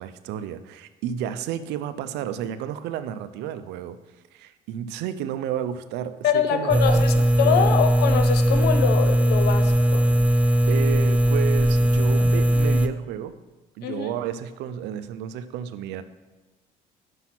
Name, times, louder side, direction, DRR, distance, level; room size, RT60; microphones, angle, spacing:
voice 1, 0.0-4.0 4.3-7.8 10.7-13.3 13.8-16.0, right 10 dB, 90° right, 12 dB, 0.5 m, -32 dB
voice 2, 6.2-10.1 13.8-14.1, left 8 dB, 75° left, 8 dB, 0.8 m, -24 dB
sound 1, 6.7-12.9, equal, 10° right, 0.4 m, -19 dB
5.9 x 5.5 x 5.8 m, 1.2 s
cardioid pair, 110°, 17 cm